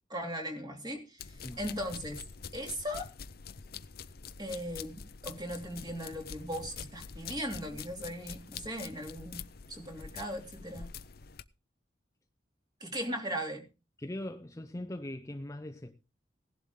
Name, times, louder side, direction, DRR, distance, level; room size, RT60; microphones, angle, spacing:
voice 1, 0.1-1.3 1.6-2.2 2.5-3.1 4.4-10.9 12.8-13.7, equal, 20° right, 2.9 m, -38 dB
sound 1, 1.2-11.4, left 6 dB, 55° left, 0.7 m, -46 dB
voice 2, 14.0-16.0, left 1 dB, 15° left, 0.7 m, -40 dB
17.5 x 11.5 x 3.7 m
head